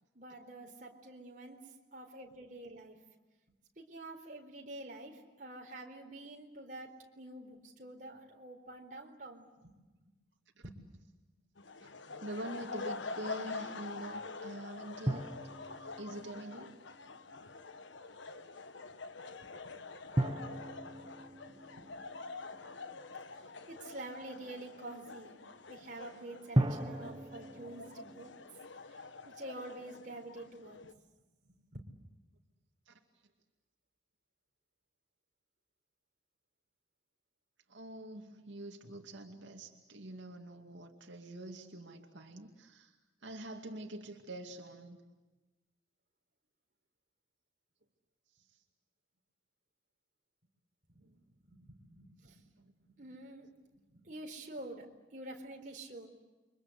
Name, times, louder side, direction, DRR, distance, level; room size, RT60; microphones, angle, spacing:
voice 1, 0.1-3.0 3.8-9.7 10.6-10.8 19.4-22.2 23.3-25.3 25.7-28.4 28.9-30.8 31.4-32.0 50.9-52.5 52.8-56.1, right 2 dB, 45° right, 2 dB, 4.1 m, -48 dB
sound 1, 11.6-30.9, left 3 dB, 85° left, 1.3 m, -46 dB
voice 2, 12.2-15.3 16.0-16.8 32.9-33.0 37.7-43.0 43.2-45.0 48.5-48.6 51.0-51.2 52.6-52.7, right 1 dB, 85° right, 3 dB, 2.4 m, -45 dB
sound 2, 15.1-17.3 20.2-23.1 26.6-28.4, right 1 dB, 25° right, 1.1 m, -37 dB
29.5 x 24.5 x 8.3 m, 1.1 s
head